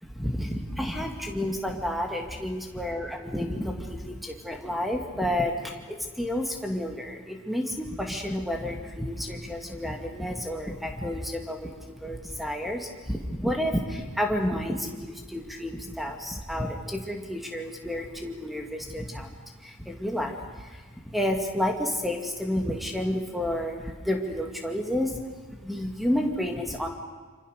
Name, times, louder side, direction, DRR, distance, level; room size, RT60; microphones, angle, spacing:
voice 1, 0.0-26.9, left 1 dB, ahead, 2 dB, 2.4 m, -31 dB
27.0 x 26.0 x 6.7 m, 1.4 s
head